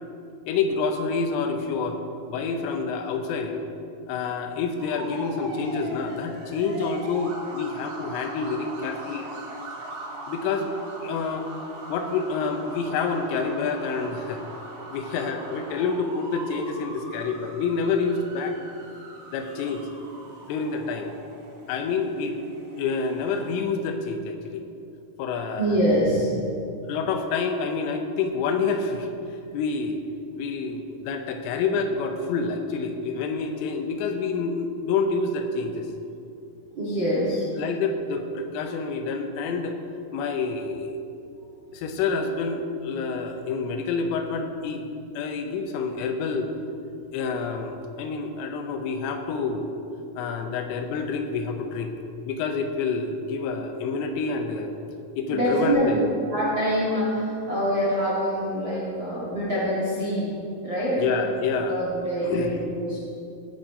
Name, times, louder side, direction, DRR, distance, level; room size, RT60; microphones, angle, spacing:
voice 1, 0.5-2.0 2.3-3.6 4.1-9.3 10.3-10.7 11.0-11.5 11.9-14.4 14.9-18.6 19.3-19.8 20.5-21.1 21.7-22.4 22.8-24.6 25.2-25.8 26.8-30.0 30.4-35.9 37.5-39.8 40.1-41.0 41.7-44.9 45.2-46.5 47.1-49.7 50.2-51.9 52.2-54.7 55.2-56.1 61.0-61.8 62.2-62.6, left 4 dB, 80° left, 5 dB, 3.2 m, -28 dB
sound 1, 4.8-23.6, right 2 dB, 55° right, 2.7 m, -41 dB
voice 2, 25.6-26.3 29.5-29.6 36.7-37.5 55.3-55.9 56.3-61.1 61.7-63.0, equal, 80° right, -8 dB, 1.0 m, -25 dB
17.0 x 5.9 x 4.9 m, 2.7 s
omnidirectional pair, 5.8 m